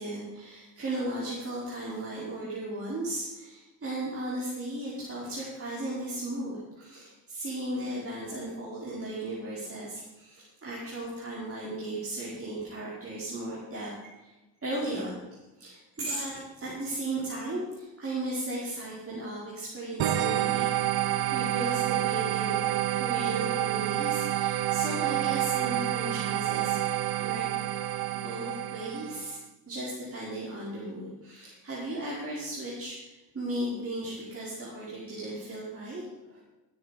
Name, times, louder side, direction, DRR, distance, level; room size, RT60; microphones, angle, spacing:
voice 1, 0.0-14.3 14.6-15.2 15.6-20.8 21.3-27.5 28.1-29.4 29.7-36.0 36.3-36.4, right 1 dB, 25° right, -7 dB, 5.0 m, -36 dB
sound 1, 20.0-29.4, right 13 dB, 50° right, 0.9 m, -28 dB
15.5 x 9.5 x 5.2 m, 1.1 s
hypercardioid pair, 65°, 50 cm